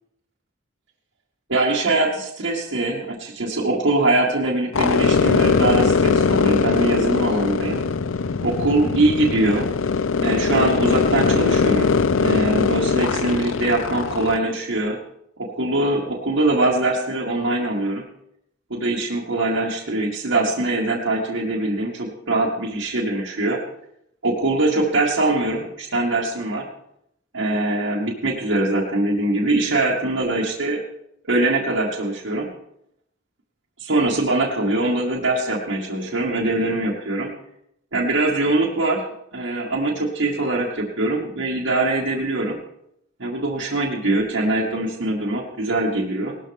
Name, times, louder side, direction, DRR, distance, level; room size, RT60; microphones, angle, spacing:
voice 1, 1.5-7.8 8.4-9.7 10.2-15.0 15.4-18.0 18.7-23.6 24.2-26.7 27.3-30.8 31.2-32.5 33.8-37.3 37.9-39.0 39.3-42.6 43.2-46.4, right 2 dB, 70° right, -5 dB, 2.0 m, -22 dB
sound 1, 4.7-14.4, left 5 dB, 80° left, 0.6 m, -21 dB
18.5 x 13.0 x 3.6 m, 0.77 s
head